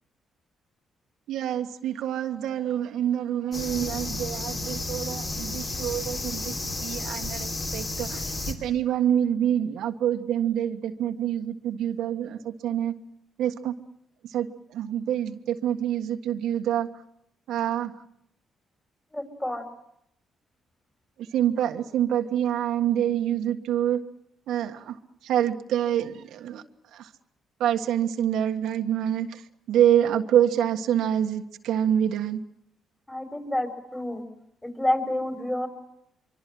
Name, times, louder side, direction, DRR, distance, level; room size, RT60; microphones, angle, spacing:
voice 1, 1.3-12.9 13.4-13.7 14.3-16.9 17.5-17.9 21.3-24.0 24.5-25.0 25.2-26.6 26.9-27.1 27.6-29.4 29.7-32.4, right 10 dB, 80° right, 5 dB, 1.6 m, -26 dB
sound 1, 3.5-8.5, left 2 dB, 40° left, 6.0 m, -32 dB
voice 2, 19.1-19.6 33.1-34.2 34.6-35.7, left 1 dB, 10° left, 7 dB, 5.4 m, -28 dB
24.5 x 24.5 x 7.8 m, 0.76 s
cardioid pair, 90°, 0 cm